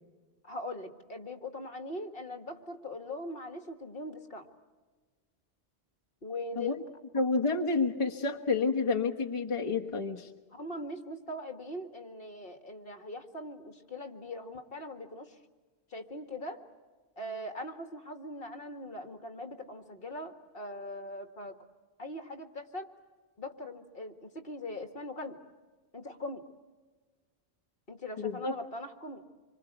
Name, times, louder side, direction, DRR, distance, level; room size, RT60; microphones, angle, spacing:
voice 1, 0.4-4.5 6.2-6.8 10.5-15.4 15.9-16.6 17.2-21.6 22.0-22.9 23.4-25.4 25.9-26.4 27.9-29.2, left 1 dB, 55° left, 7 dB, 2.1 m, -41 dB
voice 2, 7.1-10.3 28.2-28.5, left 4 dB, 30° left, 2 dB, 1.3 m, -29 dB
27.0 x 24.5 x 8.1 m, 1.3 s
omnidirectional pair, 1.1 m